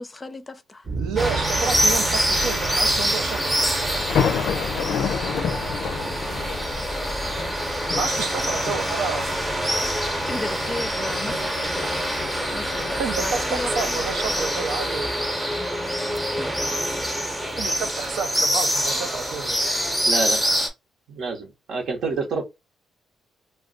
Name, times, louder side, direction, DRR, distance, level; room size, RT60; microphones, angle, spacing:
voice 1, 0.0-0.9 10.3-12.1 12.5-14.0 15.6-16.1, left 2 dB, 20° left, 0.5 m, -35 dB
sound 1, 0.8-11.5, right 4 dB, 40° right, 0.8 m, -36 dB
voice 2, 1.0-4.0 6.2-6.3 6.9-7.0 7.9-9.3 13.0-15.1 17.6-19.6, right 6 dB, 90° right, 0.6 m, -30 dB
sound 2, 1.2-20.7, equal, 10° right, 0.8 m, -25 dB
sound 3, 3.9-14.4, left 7 dB, 75° left, 0.4 m, -31 dB
voice 3, 20.1-20.4 21.1-22.5, right 4 dB, 70° right, 1.0 m, -27 dB
2.4 x 2.2 x 3.7 m
cardioid pair, 90°, 0 cm